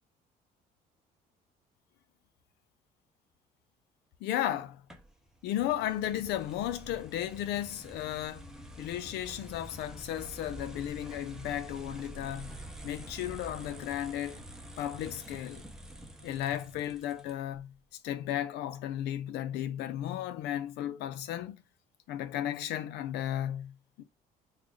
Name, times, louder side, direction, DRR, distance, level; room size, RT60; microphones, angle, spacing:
voice 1, 4.2-4.8 5.4-8.5 8.8-12.6 12.8-14.4 14.8-15.6 16.2-17.7 18.0-21.6 22.1-24.0, left 12 dB, 85° left, 0.5 m, -34 dB
sound 1, 4.9-17.6, right 1 dB, 5° right, 0.6 m, -47 dB
3.8 x 2.4 x 3.1 m
cardioid pair, 110°, 17 cm